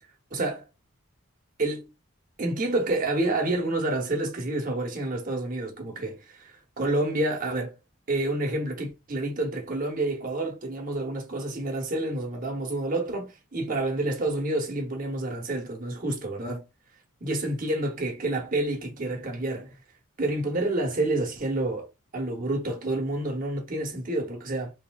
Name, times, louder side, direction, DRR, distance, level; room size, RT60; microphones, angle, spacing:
voice 1, 0.3-0.7 1.6-1.9 2.4-7.7 8.1-16.6 17.2-19.7 20.2-21.9 22.1-24.7, right 2 dB, 40° right, 0.9 m, -28 dB
3.4 x 2.8 x 2.2 m
head